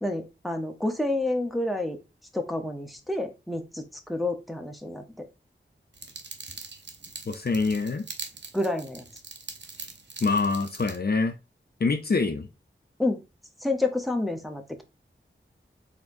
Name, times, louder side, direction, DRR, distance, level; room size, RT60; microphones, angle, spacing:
voice 1, 0.0-2.0 2.3-5.2 8.5-9.0 13.0-13.2 13.6-14.8, left 2 dB, ahead, 0.8 m, -29 dB
sound 1, 5.9-11.0, right 3 dB, 60° right, 0.7 m, -42 dB
voice 2, 7.3-8.0 10.2-11.3 11.8-12.5, left 4 dB, 50° left, 0.5 m, -25 dB
4.2 x 3.5 x 2.6 m
wide cardioid pair, 55°, 21 cm